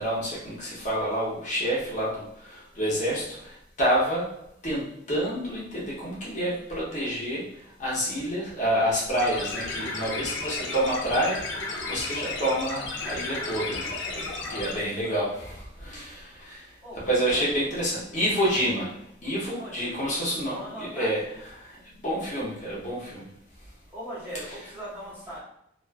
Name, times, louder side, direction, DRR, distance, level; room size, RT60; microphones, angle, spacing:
voice 1, 0.0-3.3 3.8-4.3 4.6-7.5 7.8-13.9 14.5-16.6 17.1-18.9 19.2-21.2 22.0-23.2, equal, 45° left, -6 dB, 0.8 m, -28 dB
voice 2, 2.7-3.1 14.1-15.2 15.7-16.1 16.8-17.4 17.7-18.2 19.5-20.0 20.5-21.2 23.1-23.4 23.9-25.4, right 1 dB, 10° right, -9 dB, 0.7 m, -42 dB
sound 1, 9.1-14.7, left 3 dB, 75° left, 0.5 m, -33 dB
2.4 x 2.3 x 2.5 m, 0.77 s
head